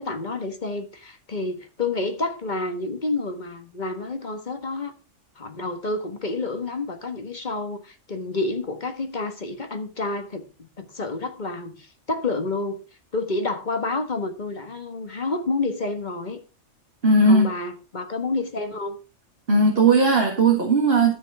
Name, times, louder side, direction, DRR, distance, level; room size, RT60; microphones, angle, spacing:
voice 1, 0.0-4.9 5.3-12.8 13.1-16.4 17.3-19.0, left 3 dB, 35° left, 1.7 m, -29 dB
voice 2, 17.0-17.5 19.5-21.1, right 2 dB, 50° right, 2.1 m, -17 dB
13.0 x 6.5 x 4.8 m
omnidirectional pair, 1.3 m